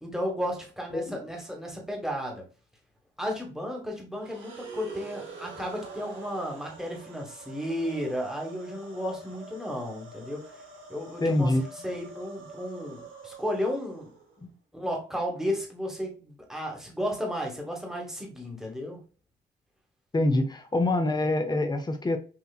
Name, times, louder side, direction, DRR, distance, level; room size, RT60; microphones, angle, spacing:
voice 1, 0.0-2.5 3.2-10.6 10.9-14.1 14.7-19.0, equal, ahead, 0 dB, 1.5 m, -33 dB
sound 1, 4.2-14.4, right 3 dB, 80° right, 1.6 m, -46 dB
voice 2, 11.2-11.6 14.4-14.5 20.1-22.2, left 2 dB, 20° left, 7 dB, 0.7 m, -25 dB
5.7 x 2.7 x 2.4 m, 0.37 s
cardioid pair, 90°, 20 cm